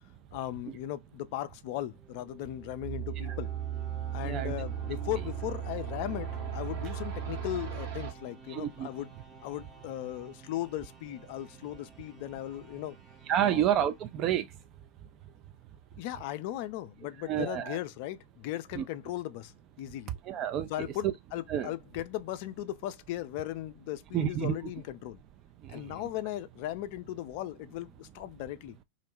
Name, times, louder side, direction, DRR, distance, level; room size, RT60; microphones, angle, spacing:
voice 1, 0.3-3.5 4.1-9.1 9.4-13.0 13.4-13.7 16.0-20.1 20.7-25.2 25.7-28.8, left 14 dB, 45° left, 0.3 m, -37 dB
sound 1, 1.7-14.8, right 4 dB, 15° right, 0.7 m, -54 dB
sound 2, 2.4-8.1, right 9 dB, 55° right, 1.0 m, -36 dB
voice 2, 4.2-4.5 8.5-8.9 13.3-14.5 17.3-17.8 18.7-18.8 20.2-20.7 21.0-21.1 21.5-21.7 24.1-24.6 25.6-25.9, right 10 dB, 35° right, 0.3 m, -29 dB
2.4 x 2.1 x 3.0 m
figure-of-eight pair, 90°, 0 cm